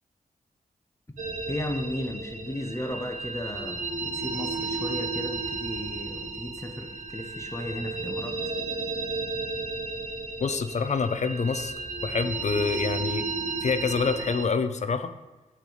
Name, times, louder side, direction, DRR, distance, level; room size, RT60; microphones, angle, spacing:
sound 1, 1.2-14.5, right 3 dB, 60° right, 1.0 m, -33 dB
voice 1, 1.5-8.4, left 1 dB, 20° left, 4 dB, 0.8 m, -35 dB
voice 2, 10.4-11.7 12.0-13.2 13.6-15.1, left 5 dB, 50° left, 10 dB, 0.5 m, -26 dB
9.3 x 3.4 x 3.9 m, 1.2 s
cardioid pair, 55°, 15 cm